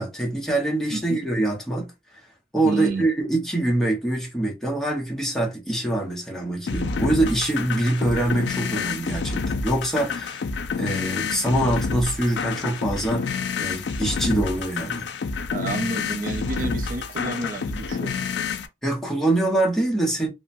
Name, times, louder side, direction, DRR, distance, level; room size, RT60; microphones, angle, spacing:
voice 1, 0.0-1.9 2.5-10.4 10.8-15.1 18.8-20.3, right 1 dB, 5° left, 0.8 m, -24 dB
voice 2, 2.6-3.0 15.5-18.3, right 2 dB, 50° right, 0.4 m, -30 dB
sound 1, 6.7-18.7, left 5 dB, 85° left, 0.4 m, -28 dB
2.9 x 2.1 x 2.5 m
head